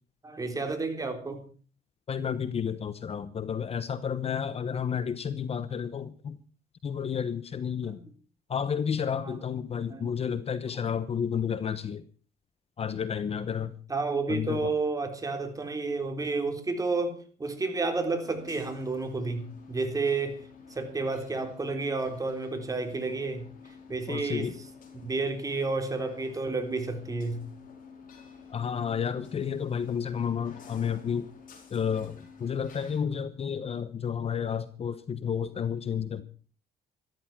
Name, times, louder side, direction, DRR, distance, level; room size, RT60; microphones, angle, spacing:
voice 1, 0.2-1.4 7.8-8.0 9.1-9.4 9.7-10.1 13.9-23.5 23.9-24.6 25.0-27.5, right 3 dB, 20° right, 6 dB, 3.7 m, -31 dB
voice 2, 2.1-6.4 6.8-8.0 8.5-12.0 12.8-13.7 14.3-14.7 24.1-24.5 28.5-31.3 31.7-36.2, left 7 dB, 35° left, 14 dB, 1.0 m, -31 dB
sound 1, 18.2-33.0, left 5 dB, 55° left, 5.0 m, -50 dB
14.0 x 13.0 x 6.0 m, 0.40 s
cardioid pair, 110°, 17 cm